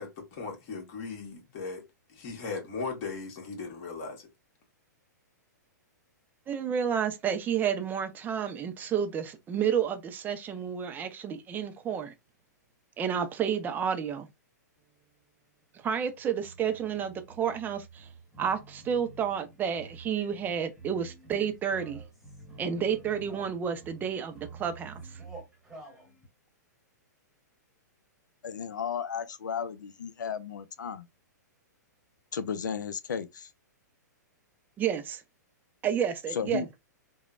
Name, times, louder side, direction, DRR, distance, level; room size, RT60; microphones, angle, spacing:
voice 1, 0.0-1.8 2.1-4.3, left 4 dB, 45° left, 1.4 m, -38 dB
voice 2, 6.5-12.1 13.0-14.3 15.7-18.1 18.4-22.0 22.6-25.2 34.8-35.2 35.8-36.7, right 8 dB, 20° right, 0.4 m, -30 dB
sound 1, 14.8-15.2 15.6-26.3, right 3 dB, ahead, 1.0 m, -49 dB
voice 3, 28.4-31.1 32.3-33.5 36.3-36.7, left 7 dB, 85° left, 0.4 m, -34 dB
3.0 x 2.0 x 2.4 m
hypercardioid pair, 125°, 10 cm